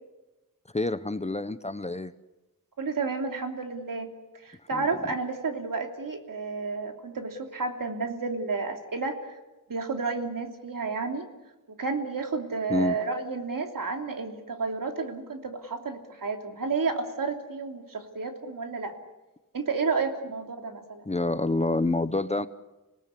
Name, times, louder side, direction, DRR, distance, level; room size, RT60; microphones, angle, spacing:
voice 1, 0.7-2.1 4.7-4.9 12.7-12.9 21.1-22.5, left 2 dB, 20° left, 13 dB, 0.8 m, -27 dB
voice 2, 2.8-4.1 4.4-9.3 9.7-11.3 11.8-18.9 19.5-21.0, right 4 dB, 70° right, 4 dB, 3.2 m, -31 dB
27.0 x 18.5 x 8.4 m, 1.1 s
wide cardioid pair, 115°, 34 cm